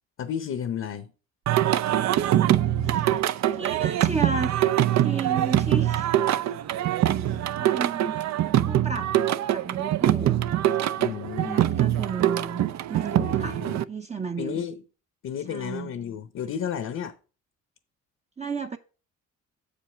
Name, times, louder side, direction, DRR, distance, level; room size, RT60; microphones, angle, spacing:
voice 1, 0.2-1.1 10.9-11.6 13.2-13.8 14.4-14.8 15.2-17.1, left 8 dB, 60° left, 0.8 m, -32 dB
Singing, 1.5-13.8, right 12 dB, 65° right, 0.5 m, -23 dB
voice 2, 2.8-4.5 5.0-6.1 7.2-9.1 9.5-10.4 11.4-13.6 13.9-14.6 15.5-15.9 18.4-18.8, right 4 dB, 20° right, 0.6 m, -33 dB
7.1 x 5.3 x 5.6 m
cardioid pair, 90°, 30 cm